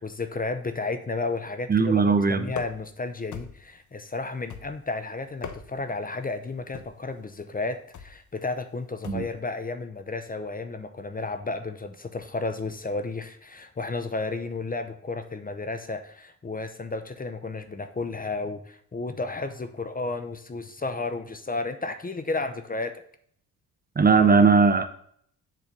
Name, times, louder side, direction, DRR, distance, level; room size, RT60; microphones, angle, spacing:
voice 1, 0.0-23.0, left 3 dB, 25° left, 9 dB, 0.7 m, -32 dB
voice 2, 1.7-2.5 9.1-9.2 24.0-24.9, right 5 dB, 25° right, 9 dB, 0.7 m, -19 dB
sound 1, 2.5-3.0 3.3-3.8 4.5-4.9 5.3-5.9 6.7-7.1 7.9-8.2 9.0-9.4, left 7 dB, 55° left, 1.0 m, -40 dB
7.5 x 3.9 x 6.7 m, 0.62 s
cardioid pair, 95°, 36 cm